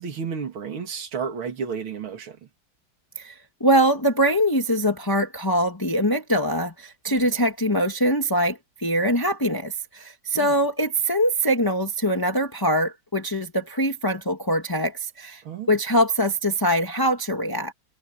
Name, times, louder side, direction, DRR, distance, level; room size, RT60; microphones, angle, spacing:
voice 1, 0.0-2.4 7.1-7.4 10.3-10.5 15.4-15.7, right 6 dB, 80° right, 3.1 m, -32 dB
voice 2, 3.2-15.4 15.7-17.7, equal, 10° left, 1.9 m, -23 dB
omnidirectional pair, 2.2 m